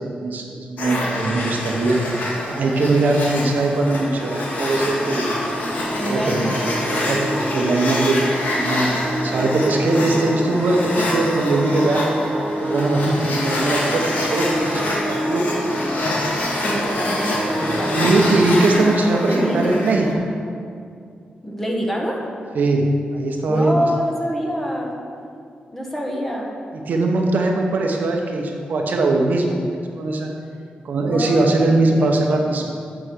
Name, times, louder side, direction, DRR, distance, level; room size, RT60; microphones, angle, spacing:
voice 1, 0.0-2.0 2.5-5.3 6.0-6.4 6.7-8.2 8.5-12.0 12.6-14.8 15.1-15.4 17.9-20.1 22.5-23.9 26.9-29.5 30.0-30.3 30.8-32.6, right 2 dB, 65° right, 1 dB, 1.0 m, -20 dB
sound 1, 0.8-20.1, left 1 dB, 65° left, 1.7 m, -26 dB
sound 2, 4.2-19.6, right 1 dB, 25° right, 0.8 m, -28 dB
voice 2, 6.0-6.6 16.6-18.1 19.3-19.8 21.4-22.2 23.5-24.9 25.7-26.5 31.0-32.5, equal, 10° left, -1 dB, 1.3 m, -26 dB
8.0 x 6.1 x 6.4 m, 2.4 s
wide cardioid pair, 145°, 3 cm